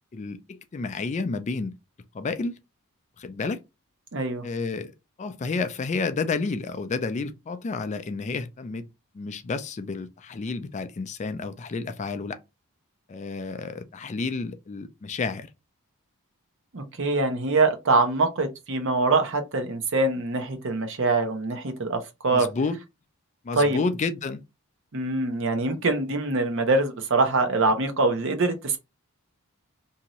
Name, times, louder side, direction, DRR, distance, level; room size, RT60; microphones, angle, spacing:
voice 1, 0.1-1.7 2.1-2.6 3.2-3.6 4.4-4.9 5.2-8.9 9.1-12.4 13.1-15.5 22.3-22.8 23.4-24.4, left 4 dB, 30° left, 0.3 m, -30 dB
voice 2, 4.1-4.5 16.7-22.5 23.6-23.8 24.9-28.8, right 3 dB, 60° right, 0.8 m, -24 dB
2.7 x 2.5 x 2.9 m
head